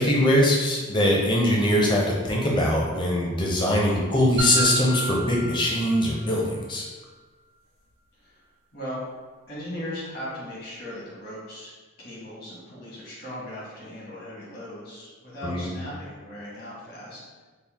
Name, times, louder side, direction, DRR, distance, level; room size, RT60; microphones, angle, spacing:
voice 1, 0.0-6.9 15.4-15.7, equal, 20° left, -3 dB, 0.5 m, -22 dB
sound 1, 4.4-6.4, right 1 dB, 85° right, 0.8 m, -31 dB
voice 2, 9.5-11.7 12.0-17.4, equal, 50° left, -6 dB, 1.2 m, -38 dB
4.2 x 2.1 x 3.4 m, 1.3 s
head